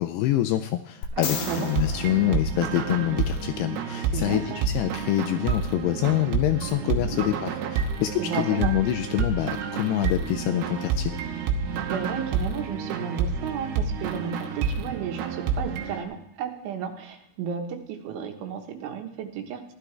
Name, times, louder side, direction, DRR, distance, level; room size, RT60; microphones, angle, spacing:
voice 1, 0.0-11.1, left 14 dB, 85° left, 8 dB, 2.3 m, -26 dB
sound 1, 1.0-3.3 6.7-6.8, left 7 dB, 65° left, 2.2 m, -36 dB
voice 2, 1.2-1.7 4.1-4.6 6.9-7.2 8.2-8.7 11.9-19.7, right 7 dB, 90° right, 4 dB, 3.8 m, -33 dB
sound 2, 1.3-16.0, right 6 dB, 70° right, 2.8 m, -29 dB
16.5 x 12.0 x 3.3 m, 0.83 s
omnidirectional pair, 5.3 m